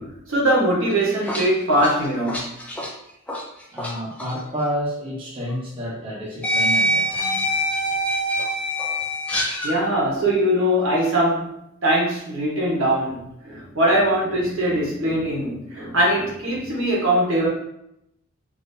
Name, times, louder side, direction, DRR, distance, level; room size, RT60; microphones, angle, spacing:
voice 1, 0.0-2.5 9.6-11.5 11.8-17.5, right 1 dB, 70° right, -4 dB, 1.1 m, -21 dB
sound 1, 0.9-3.9 4.2-4.4 5.5-5.6 6.4-9.8, equal, 5° left, 0.5 m, -24 dB
voice 2, 3.7-7.4, equal, 25° right, -6 dB, 0.8 m, -30 dB
3.6 x 2.6 x 2.6 m, 0.79 s
head